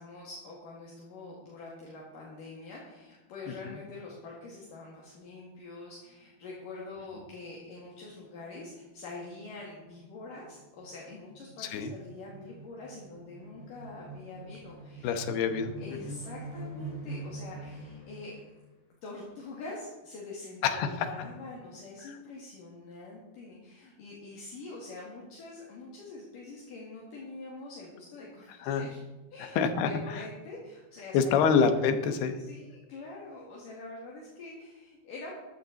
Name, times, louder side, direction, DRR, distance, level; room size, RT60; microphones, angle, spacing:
voice 1, 0.0-15.1 15.8-18.4 19.0-29.0 29.3-31.6 32.4-35.3, left 3 dB, 60° left, -3 dB, 3.6 m, -45 dB
sound 1, 7.8-8.1 8.5-8.6 8.9-18.5, right 2 dB, 30° left, 4.9 m, -45 dB
voice 2, 11.6-11.9 15.0-16.2 20.6-21.1 28.6-28.9 29.4-30.3 31.1-32.4, left 6 dB, 85° left, 8 dB, 3.1 m, -27 dB
14.0 x 12.0 x 4.0 m, 1.2 s
omnidirectional pair, 4.4 m